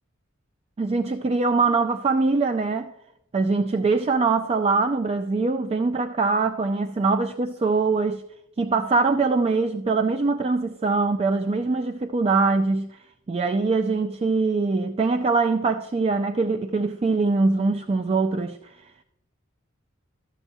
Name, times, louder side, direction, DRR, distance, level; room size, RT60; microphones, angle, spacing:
voice 1, 0.8-2.9 3.3-8.2 8.6-12.9 13.3-18.7, right 3 dB, 30° right, 0.3 m, -23 dB
13.0 x 7.0 x 2.7 m
head